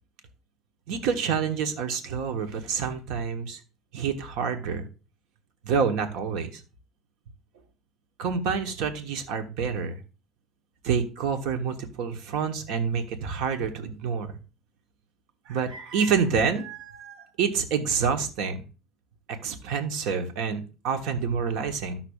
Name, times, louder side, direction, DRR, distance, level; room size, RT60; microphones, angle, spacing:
voice 1, 0.9-3.6 3.9-4.9 5.6-6.6 8.2-10.0 10.8-14.3 15.5-18.6 19.3-22.0, right 6 dB, 80° right, 6 dB, 1.2 m, -28 dB
13.5 x 5.8 x 2.3 m, 0.33 s
cardioid pair, 135°, 0 cm